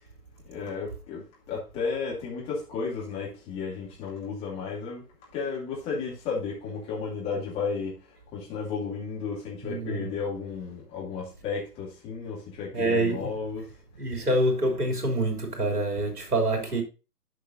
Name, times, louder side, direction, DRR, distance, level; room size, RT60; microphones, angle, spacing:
voice 1, 0.5-5.0 5.3-8.0 8.3-13.7, left 5 dB, 10° left, 2.5 m, -33 dB
voice 2, 9.6-10.1 12.7-13.3 14.0-16.8, right 1 dB, 65° right, 3.4 m, -26 dB
13.5 x 5.3 x 2.7 m
figure-of-eight pair, 140°, 48 cm